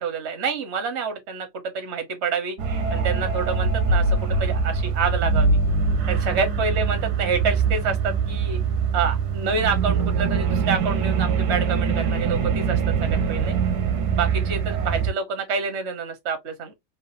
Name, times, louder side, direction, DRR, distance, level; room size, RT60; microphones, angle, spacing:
voice 1, 0.0-2.6 2.9-5.6 6.1-8.6 8.9-13.5 14.1-16.7, right 5 dB, 45° right, 1.2 m, -27 dB
sound 1, 2.6-15.1, right 5 dB, 65° right, 1.2 m, -23 dB
3.3 x 2.7 x 2.9 m
omnidirectional pair, 2.0 m